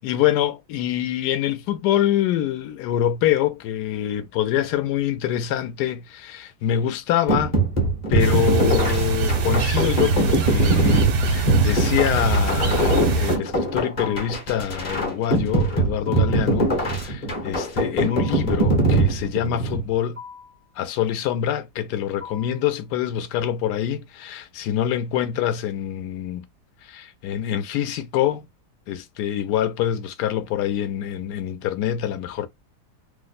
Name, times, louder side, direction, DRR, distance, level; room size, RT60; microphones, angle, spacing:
voice 1, 0.0-7.6 8.1-20.2 20.8-26.4 26.8-28.5 28.9-32.5, left 11 dB, 80° left, 1.1 m, -25 dB
sound 1, 7.3-19.8, right 2 dB, 35° left, 0.9 m, -22 dB
sound 2, 8.2-13.4, right 3 dB, 90° right, 1.4 m, -22 dB
sound 3, 14.0-14.5 16.1-16.6 18.1-18.6 20.2-20.6 22.2-22.7, left 6 dB, 45° right, 0.5 m, -40 dB
3.0 x 2.0 x 3.9 m
omnidirectional pair, 1.8 m